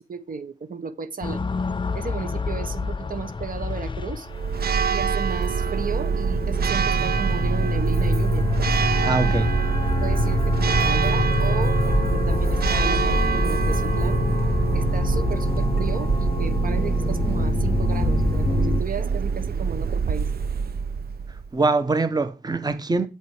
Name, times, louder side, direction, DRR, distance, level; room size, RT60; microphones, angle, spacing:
voice 1, 0.0-1.5 1.9-4.3 4.9-8.5 9.3-9.5 10.0-14.2 14.7-20.3, right 6 dB, 65° right, 0.9 m, -34 dB
sound 1, 1.2-18.8, left 4 dB, 30° left, 0.5 m, -26 dB
Church bell, 4.3-21.5, right 5 dB, 80° right, 0.6 m, -24 dB
voice 2, 9.0-9.5 21.5-23.1, right 3 dB, 25° right, 0.9 m, -23 dB
8.3 x 7.9 x 4.8 m
wide cardioid pair, 145°, 16 cm